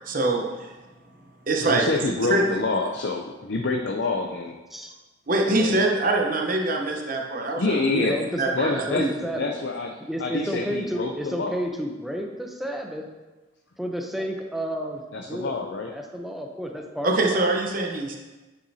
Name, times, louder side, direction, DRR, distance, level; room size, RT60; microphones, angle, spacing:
voice 1, 0.1-0.7 1.5-2.0 2.3-2.4 5.3-7.8 8.0-8.1 8.4-9.1 17.0-18.2, right 2 dB, 45° right, 1 dB, 0.9 m, -24 dB
voice 2, 1.6-4.6 5.5-5.8 7.6-8.2 8.5-9.1 9.4-11.6 15.1-15.9, left 3 dB, 65° left, 2 dB, 0.6 m, -27 dB
voice 3, 7.9-8.4 8.9-9.5 10.1-13.1 13.8-15.0 15.3-15.6 15.9-17.4, equal, ahead, 2 dB, 0.7 m, -31 dB
9.2 x 6.6 x 2.8 m, 1.2 s
head